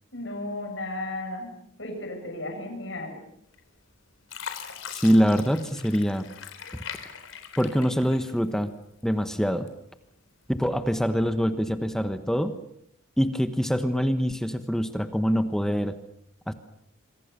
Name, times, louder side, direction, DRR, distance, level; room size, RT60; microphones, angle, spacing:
voice 1, 0.1-1.5 1.8-3.2, left 1 dB, 70° left, 2 dB, 7.7 m, -34 dB
Fill (with liquid), 3.5-3.9 4.3-8.7 9.1-9.9 10.5-10.6, left 7 dB, 85° left, 3.7 m, -41 dB
voice 2, 4.9-6.3 6.7-6.8 7.6-8.7 9.0-9.7 10.5-12.5 13.2-16.0 16.5-16.6, equal, 5° left, 9 dB, 1.2 m, -24 dB
27.0 x 24.0 x 6.9 m, 0.73 s
head